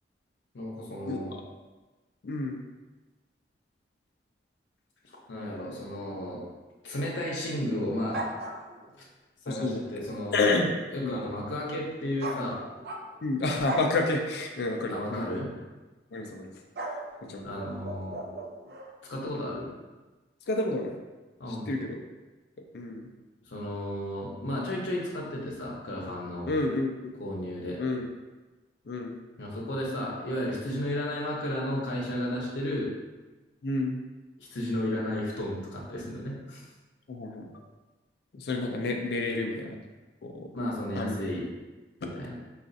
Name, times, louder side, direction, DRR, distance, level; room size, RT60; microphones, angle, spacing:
voice 1, 0.5-1.3 5.0-6.4 6.8-8.3 9.4-10.4 10.9-12.6 14.9-15.5 17.4-18.2 19.1-19.7 21.4-21.7 23.5-26.5 27.2-27.8 29.4-32.9 34.4-36.6 40.5-41.4 42.1-42.3, left 1 dB, 90° left, -3 dB, 0.7 m, -33 dB
voice 2, 2.2-2.6 9.5-9.8 10.3-10.7 11.0-11.2 13.2-15.3 16.1-16.5 17.2-17.5 20.5-21.0 21.5-22.0 22.7-23.1 26.4-26.9 27.8-28.1 28.9-29.2 33.6-34.0 37.1-37.5 38.3-39.8 40.2-40.5 41.0-41.1 42.0-42.1, left 2 dB, 60° left, 2 dB, 0.4 m, -29 dB
sound 1, 8.1-9.0 12.2-13.3 13.6-14.0 15.2-15.4 16.8-18.9, right 2 dB, 55° right, 0.4 m, -37 dB
4.9 x 2.4 x 2.6 m, 1.2 s
head